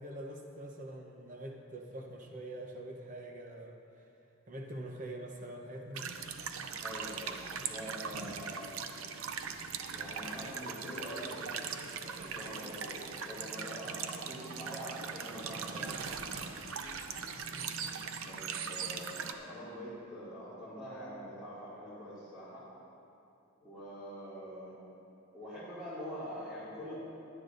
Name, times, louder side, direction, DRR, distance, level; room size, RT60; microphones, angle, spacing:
voice 1, 0.0-3.8 4.5-6.2 17.5-17.9, right 1 dB, 35° right, 1 dB, 1.0 m, -44 dB
sound 1, 5.9-19.3, right 6 dB, 75° right, 0.6 m, -40 dB
voice 2, 6.8-8.8 9.9-16.5 18.2-22.6 23.6-24.8 25.3-27.0, equal, 5° right, -13 dB, 2.4 m, -45 dB
sound 2, 10.4-17.8, left 2 dB, 70° left, 1.0 m, -56 dB
16.5 x 11.0 x 2.7 m, 2.7 s
head